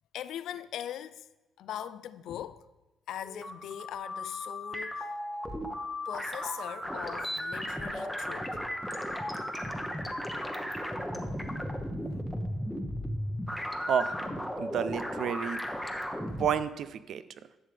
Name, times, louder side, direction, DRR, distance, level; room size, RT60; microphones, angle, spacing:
voice 1, 0.1-1.3 1.6-2.6 3.1-5.1 6.1-8.6 12.1-12.2, left 10 dB, 80° left, 0.3 m, -40 dB
sound 1, 3.2-16.5, equal, ahead, 0.9 m, -35 dB
voice 2, 13.9-15.6 16.4-17.2, right 8 dB, 70° right, 0.4 m, -31 dB
11.0 x 6.6 x 3.3 m
cardioid pair, 90°, 0 cm